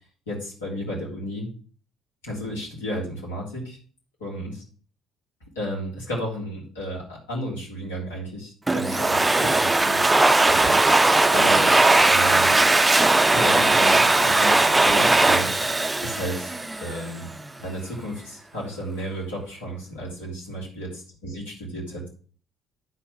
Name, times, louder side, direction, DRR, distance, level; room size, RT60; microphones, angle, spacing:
voice 1, 0.3-1.5 2.2-3.8 4.2-4.6 5.5-10.0 10.4-12.6 13.3-15.5 16.0-17.3 17.6-22.1, equal, 75° left, -5 dB, 3.5 m, -33 dB
Domestic sounds home sounds, 8.7-17.1, right 2 dB, 15° right, 0.5 m, -19 dB
9.9 x 4.5 x 6.2 m, 0.42 s
figure-of-eight pair, 50°, 0 cm